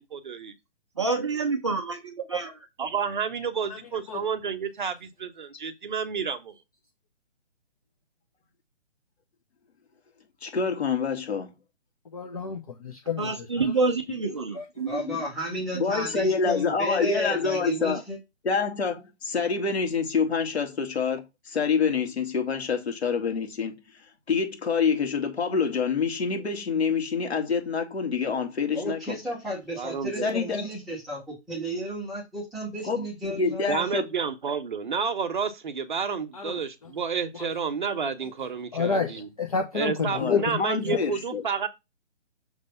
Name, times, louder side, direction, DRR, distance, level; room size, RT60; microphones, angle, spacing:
voice 1, 0.0-0.5 2.8-6.5 29.8-30.3 33.7-39.3 39.7-41.7, right 6 dB, 45° right, 1.0 m, -30 dB
voice 2, 1.0-2.6 13.2-15.1 15.5-15.9, right 4 dB, 25° right, 0.6 m, -28 dB
voice 3, 10.4-11.5 15.1-15.2 15.8-18.0 18.4-23.8 24.3-29.2 30.2-30.7 32.8-34.1 40.1-41.4, left 5 dB, 65° left, 2.6 m, -27 dB
voice 4, 12.1-13.7 14.5-14.6 36.3-36.9 37.3-37.5 38.7-40.6 40.8-41.0, left 5 dB, 30° left, 0.8 m, -30 dB
voice 5, 14.9-18.2 28.7-33.9, equal, ahead, 1.0 m, -33 dB
6.5 x 3.3 x 5.5 m
hypercardioid pair, 165°, 35 cm